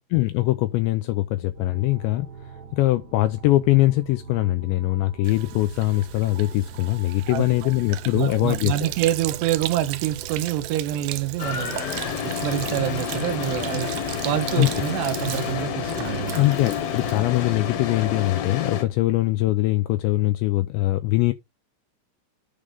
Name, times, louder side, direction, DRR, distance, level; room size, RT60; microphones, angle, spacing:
voice 1, 0.1-8.9 14.6-14.7 16.3-21.3, left 17 dB, 85° left, 2.6 m, -22 dB
sound 1, 1.5-18.1, right 5 dB, 50° right, 2.2 m, -42 dB
Sink (filling or washing), 5.2-17.6, right 16 dB, 90° right, 2.4 m, -37 dB
voice 2, 8.1-11.8 12.2-13.9 14.3-16.4, right 13 dB, 70° right, 2.9 m, -26 dB
sound 2, 11.4-18.8, left 8 dB, 65° left, 2.7 m, -29 dB
10.0 x 3.7 x 5.2 m
omnidirectional pair, 5.6 m